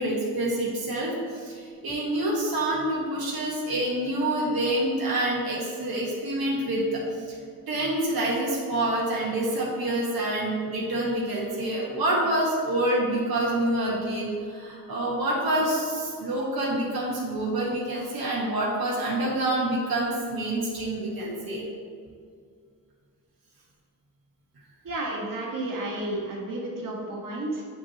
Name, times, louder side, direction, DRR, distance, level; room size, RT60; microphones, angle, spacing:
voice 1, 0.0-7.0 7.7-21.7, right 1 dB, 75° right, -5 dB, 1.5 m, -27 dB
voice 2, 24.8-27.6, right 1 dB, 60° right, -3 dB, 1.7 m, -32 dB
8.1 x 5.9 x 3.0 m, 2.2 s
wide cardioid pair, 125°, 37 cm